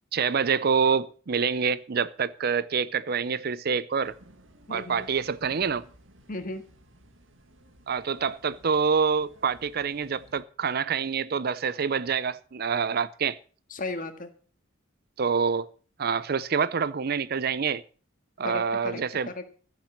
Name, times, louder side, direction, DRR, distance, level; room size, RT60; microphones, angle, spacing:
voice 1, 0.1-4.1 4.7-5.8 7.9-13.4 15.2-15.7 16.0-17.8 18.4-19.3, right 6 dB, 50° right, 0.5 m, -26 dB
sound 1, 4.0-10.4, right 1 dB, 70° right, 2.1 m, -56 dB
voice 2, 4.7-5.1 6.3-6.6 13.7-14.3 18.4-19.5, left 2 dB, 45° left, 1.9 m, -36 dB
14.5 x 7.5 x 7.2 m
head